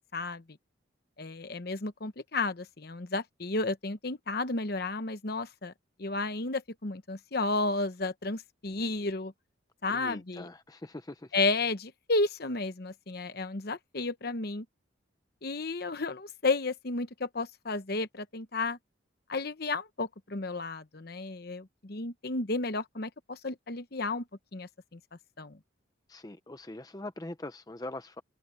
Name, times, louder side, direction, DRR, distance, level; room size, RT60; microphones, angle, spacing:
voice 1, 0.1-0.4 1.2-5.7 6.0-9.3 9.8-10.5 11.3-14.6 15.4-18.8 19.3-24.2 24.5-25.0 25.4-25.6, left 3 dB, 50° left, 1.0 m, -32 dB
voice 2, 9.9-11.3 26.1-28.2, left 2 dB, 20° left, 0.6 m, -42 dB
head